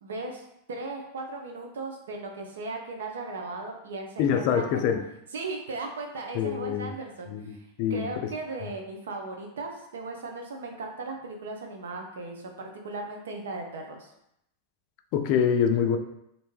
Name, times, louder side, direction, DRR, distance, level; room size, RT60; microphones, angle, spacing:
voice 1, 0.0-4.8 5.3-7.6 7.9-14.1, right 3 dB, 90° right, 3 dB, 0.5 m, -37 dB
voice 2, 4.2-5.0 6.3-6.9 7.3-8.1 15.1-16.0, left 8 dB, 55° left, 6 dB, 0.3 m, -25 dB
2.5 x 2.1 x 3.1 m, 0.80 s
hypercardioid pair, 125°, 0 cm